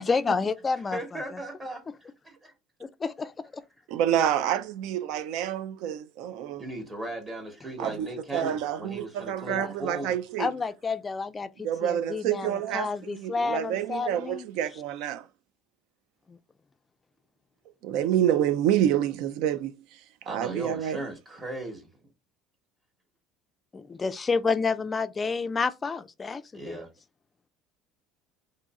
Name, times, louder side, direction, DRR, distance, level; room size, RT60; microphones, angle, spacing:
voice 1, 0.0-1.0 2.8-3.6 9.5-9.7 10.4-14.4 16.3-16.4 23.7-26.8, left 4 dB, 25° left, 0.3 m, -30 dB
voice 2, 0.9-2.5 6.6-10.2 20.2-21.9 26.5-26.9, right 1 dB, 20° right, 0.9 m, -37 dB
voice 3, 3.9-6.6 7.8-8.1 8.3-10.5 11.6-15.3 17.8-20.0 20.3-21.0, right 10 dB, 75° right, 0.4 m, -28 dB
2.6 x 2.5 x 4.0 m
cardioid pair, 120°, 0 cm